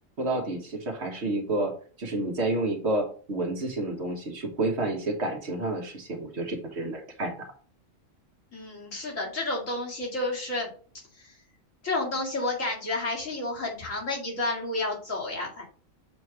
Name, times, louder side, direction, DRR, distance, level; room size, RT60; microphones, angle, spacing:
voice 1, 0.2-1.7 2.0-7.5, right 2 dB, 55° right, 3 dB, 1.5 m, -30 dB
voice 2, 8.5-10.7 11.2-11.3 11.8-15.6, left 2 dB, 75° left, -3 dB, 2.5 m, -31 dB
6.9 x 3.0 x 4.7 m, 0.41 s
omnidirectional pair, 1.3 m